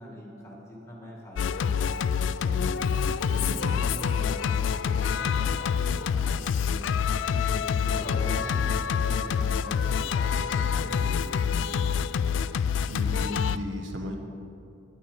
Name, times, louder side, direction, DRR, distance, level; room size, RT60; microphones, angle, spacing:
voice 1, 0.0-2.0 2.4-7.0 7.3-11.8, equal, 15° left, -3 dB, 2.1 m, -42 dB
Singing, 1.4-13.6, left 7 dB, 75° left, 0.3 m, -26 dB
voice 2, 3.3-3.8 12.9-14.2, left 1 dB, 75° right, 3 dB, 1.1 m, -35 dB
sound 1, 7.9-10.2, equal, 40° left, 1.3 m, -43 dB
9.6 x 9.6 x 5.3 m, 2.6 s
head